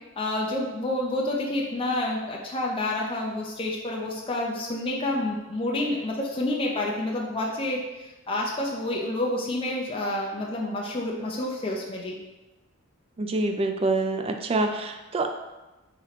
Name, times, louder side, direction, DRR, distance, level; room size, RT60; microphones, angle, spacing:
voice 1, 0.2-7.9 8.3-12.2, left 1 dB, 25° left, -2 dB, 0.5 m, -28 dB
voice 2, 13.2-15.3, right 2 dB, 25° right, 6 dB, 0.3 m, -26 dB
4.2 x 3.0 x 4.1 m, 1.1 s
head